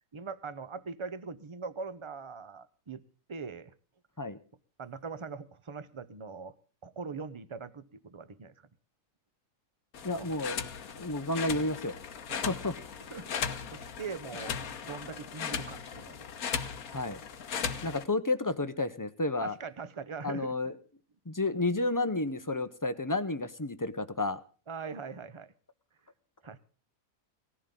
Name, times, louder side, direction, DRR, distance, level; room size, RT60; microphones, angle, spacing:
voice 1, 0.1-3.0 3.3-3.7 4.8-6.5 6.8-8.5 10.1-10.3 12.3-12.6 13.1-14.6 14.8-16.3 19.4-20.7 24.7-25.5 26.4-26.6, right 5 dB, 30° right, 16 dB, 0.6 m, -41 dB
sound 1, 9.9-18.0, left 7 dB, 75° left, 1.6 m, -37 dB
voice 2, 10.0-10.6 11.0-11.9 12.4-12.8 16.9-17.2 17.8-19.5 20.2-20.7 21.3-24.4, left 2 dB, 20° left, 13 dB, 0.6 m, -31 dB
18.5 x 14.5 x 3.8 m, 0.37 s
omnidirectional pair, 1.5 m